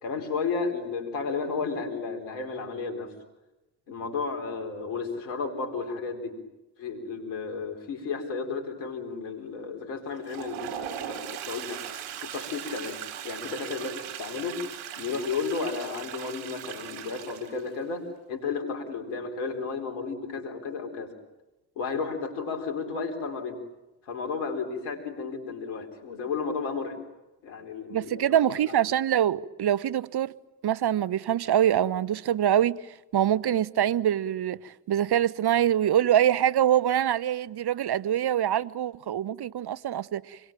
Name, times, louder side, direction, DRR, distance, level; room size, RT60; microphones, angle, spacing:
voice 1, 0.0-3.1 3.9-6.4 6.8-11.8 12.2-14.6 15.0-21.1 21.8-23.6 24.1-27.0 27.4-28.4 28.7-28.8, left 4 dB, 85° left, 4.4 m, -33 dB
Toilet flush, 10.1-17.8, right 10 dB, 80° right, 4.3 m, -39 dB
voice 2, 27.9-30.3 30.6-32.8 33.1-40.4, right 11 dB, 50° right, 1.0 m, -24 dB
27.0 x 22.0 x 9.1 m
hypercardioid pair, 45°, 48 cm